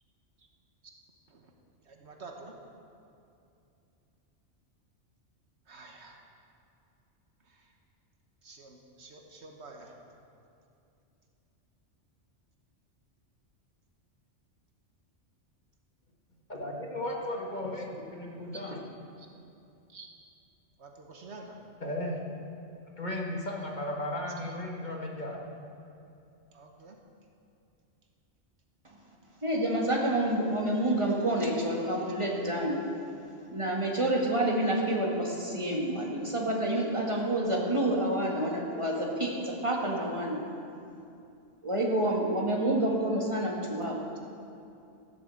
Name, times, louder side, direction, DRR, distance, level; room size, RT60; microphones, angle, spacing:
voice 1, 1.9-2.5 5.7-6.2 8.4-9.9 19.9-20.1 20.8-21.6 26.5-26.9, right 3 dB, 65° right, 2 dB, 1.4 m, -48 dB
voice 2, 16.5-18.8 21.8-22.2 23.0-25.4, left 1 dB, 40° left, -1 dB, 1.5 m, -35 dB
voice 3, 29.4-32.8 33.5-40.4 41.6-44.0, right 1 dB, 25° right, -2 dB, 1.9 m, -28 dB
15.0 x 6.7 x 7.8 m, 2.7 s
omnidirectional pair, 1.2 m